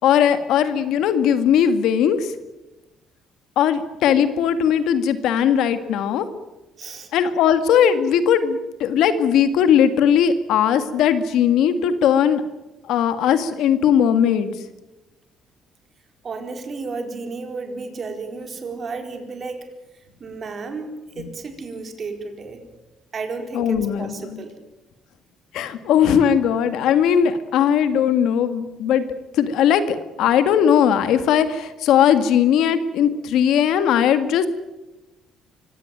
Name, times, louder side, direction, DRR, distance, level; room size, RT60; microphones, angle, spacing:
voice 1, 0.0-2.3 3.6-6.3 7.1-12.4 12.9-14.5 21.2-21.3 23.5-24.5 25.5-29.0 29.3-34.5, left 8 dB, 80° left, 10 dB, 1.9 m, -18 dB
voice 2, 6.8-7.1 16.2-19.7 20.2-20.9 21.2-22.6 23.1-24.5, right 4 dB, 40° right, 5 dB, 4.3 m, -32 dB
25.0 x 16.5 x 9.2 m, 1.0 s
cardioid pair, 115°, 0 cm